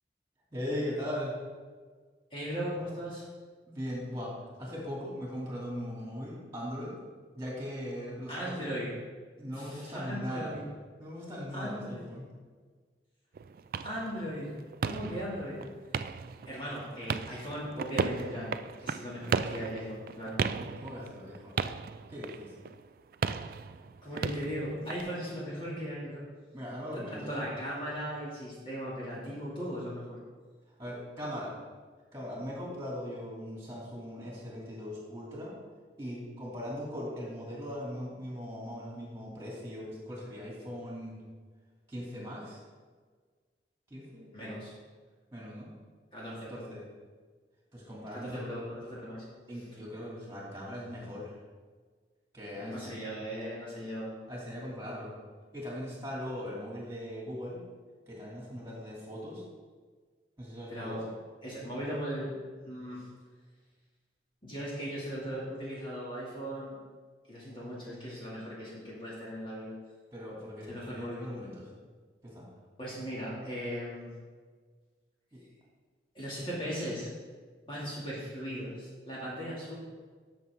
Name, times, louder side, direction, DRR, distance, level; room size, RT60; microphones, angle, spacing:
voice 1, 0.5-1.3 3.7-4.3 4.6-7.0 7.3-8.5 9.4-10.6 11.0-12.3 20.5-21.5 22.1-22.5 26.5-27.3 30.8-31.6 32.1-35.5 36.0-41.2 41.9-42.6 43.9-44.5 45.3-45.7 46.4-46.8 47.7-48.5 49.5-51.3 52.3-53.0 54.3-55.1 55.5-57.6 58.1-59.4 60.4-61.0 70.1-71.7 72.2-72.5 75.3-75.4, equal, 15° right, -5 dB, 2.8 m, -39 dB
voice 2, 2.3-3.3 8.3-9.0 9.4-10.6 11.5-12.1 13.8-14.6 14.8-15.7 16.5-18.5 18.8-20.4 24.0-26.2 26.9-30.2 44.3-44.7 46.1-46.7 48.1-49.2 52.5-54.2 60.7-61.1 61.4-62.3 62.7-63.1 64.4-66.8 67.3-69.7 70.7-71.3 72.8-74.1 76.1-77.1 77.7-79.8, equal, 30° left, -7 dB, 2.4 m, -38 dB
sound 1, 13.3-25.0, right 5 dB, 55° right, 0.3 m, -36 dB
12.0 x 6.2 x 3.7 m, 1.5 s
head